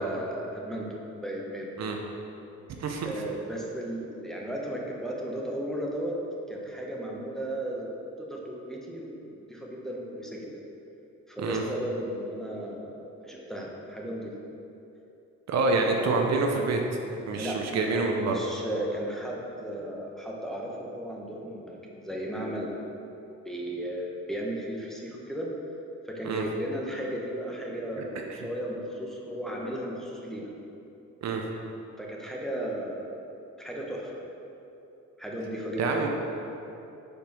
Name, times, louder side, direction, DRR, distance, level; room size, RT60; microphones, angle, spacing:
voice 1, 0.0-1.7 3.0-6.2 6.5-7.9 8.2-10.5 11.3-14.3 15.7-16.2 17.3-22.8 23.4-25.5 26.0-30.5 32.0-33.1 33.6-34.2 35.2-36.1, right 1 dB, ahead, -3 dB, 1.0 m, -35 dB
voice 2, 2.8-3.1 11.4-11.6 15.5-16.8 17.3-18.4 26.2-26.4 28.0-28.1 28.3-28.4 31.2-31.4 35.8-36.1, right 3 dB, 60° right, 2 dB, 0.7 m, -27 dB
5.1 x 4.5 x 5.3 m, 2.9 s
cardioid pair, 90°, 30 cm